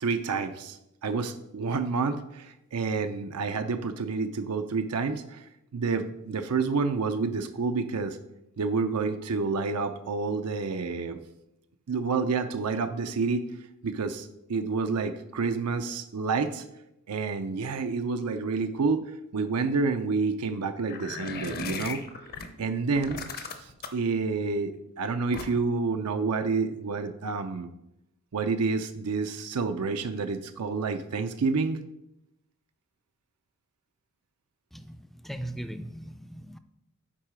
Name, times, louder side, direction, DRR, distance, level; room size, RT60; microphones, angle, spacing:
voice 1, 0.0-5.5 5.7-8.2 8.6-11.2 11.9-13.4 13.8-16.6 17.1-19.0 19.3-22.0 22.6-27.7 28.3-31.8, right 4 dB, 85° right, 0.5 m, -29 dB
sound 1, 20.9-22.5 22.9-24.1 25.3-25.8, left 4 dB, 45° left, 0.7 m, -37 dB
voice 2, 34.7-36.6, right 1 dB, ahead, 0.4 m, -39 dB
7.5 x 4.7 x 5.0 m
head